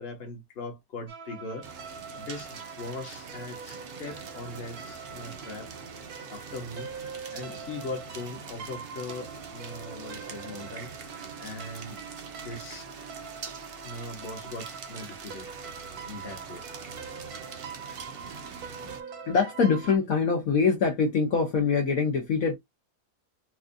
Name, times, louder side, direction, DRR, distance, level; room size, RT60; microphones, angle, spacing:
voice 1, 0.0-1.7 2.2-5.7 6.3-7.0 7.3-10.9 11.4-12.0 12.4-12.9 13.8-15.5 16.1-16.7, left 2 dB, 40° left, 1.2 m, -40 dB
sound 1, 1.1-20.0, right 6 dB, 70° right, 1.4 m, -43 dB
sound 2, 1.6-19.0, right 5 dB, 55° right, 0.7 m, -44 dB
voice 2, 19.3-22.5, left 5 dB, 60° left, 1.2 m, -24 dB
4.4 x 2.4 x 2.5 m
omnidirectional pair, 1.8 m